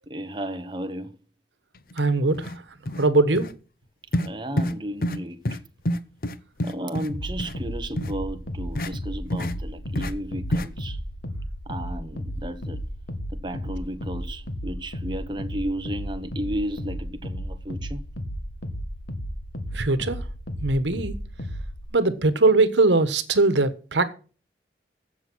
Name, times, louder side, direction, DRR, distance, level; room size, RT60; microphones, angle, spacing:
voice 1, 0.1-1.2 4.2-5.6 6.6-11.0 11.7-12.8 13.4-18.0, right 1 dB, 25° right, 1.0 m, -33 dB
sound 1, 1.9-2.0 2.3-2.6 2.9-3.1 3.4-3.5 4.1-4.3 4.6-4.8 5.0-5.2 5.5-5.6 5.9-7.1 7.4-7.5 8.0-8.1 8.8-8.9 9.3-9.5 10.0-10.1 10.5-10.7, equal, 50° left, 0.8 m, -27 dB
voice 2, 2.0-2.5 2.9-3.4 19.7-20.2 20.6-21.1 21.9-24.1, right 3 dB, 85° right, 1.2 m, -21 dB
sound 2, 7.1-21.9, equal, 80° left, 2.0 m, -34 dB
15.0 x 6.6 x 6.2 m
head